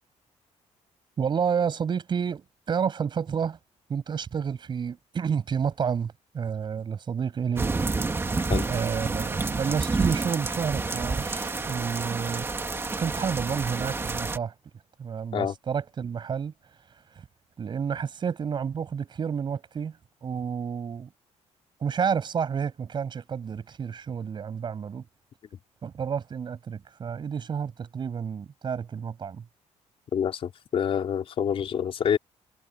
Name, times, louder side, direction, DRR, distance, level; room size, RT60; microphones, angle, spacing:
voice 1, 1.2-3.6 3.9-7.7 8.7-12.5 13.0-14.5 15.0-16.5 17.6-19.9 20.2-21.1 21.8-25.0 25.8-29.4, right 7 dB, 40° right, 6.2 m, -30 dB
sound 1, 7.6-14.4, right 3 dB, 20° right, 2.0 m, -29 dB
voice 2, 30.1-32.2, left 8 dB, 50° left, 4.3 m, -27 dB
cardioid pair, 140°, 12 cm